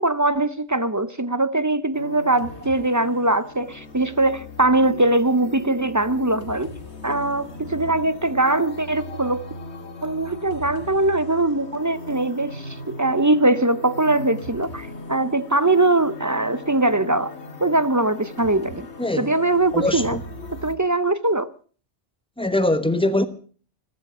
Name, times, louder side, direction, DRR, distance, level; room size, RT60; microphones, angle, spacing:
voice 1, 0.0-6.7 7.0-9.5 10.0-17.3 17.6-18.9 19.2-20.2 20.6-21.5, right 2 dB, 20° right, 0.5 m, -21 dB
sound 1, 1.9-20.7, left 2 dB, 65° left, 2.2 m, -38 dB
voice 2, 19.0-19.3 19.7-20.2 22.4-23.2, left 1 dB, 5° left, 1.0 m, -22 dB
15.0 x 14.0 x 6.1 m
omnidirectional pair, 1.2 m